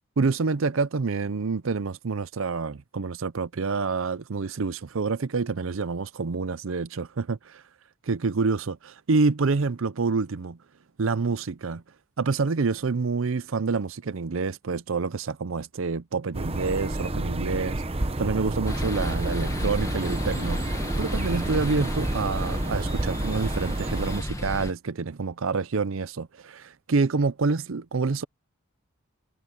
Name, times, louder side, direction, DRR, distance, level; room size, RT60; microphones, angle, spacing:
voice 1, 0.2-7.6 8.0-10.6 11.0-11.8 12.2-17.8 18.2-28.2, right 4 dB, 65° right, 0.6 m, -27 dB
sound 1, 16.3-24.2, right 1 dB, 30° right, 1.0 m, -30 dB
sound 2, 18.6-24.7, left 1 dB, 15° left, 1.6 m, -33 dB
head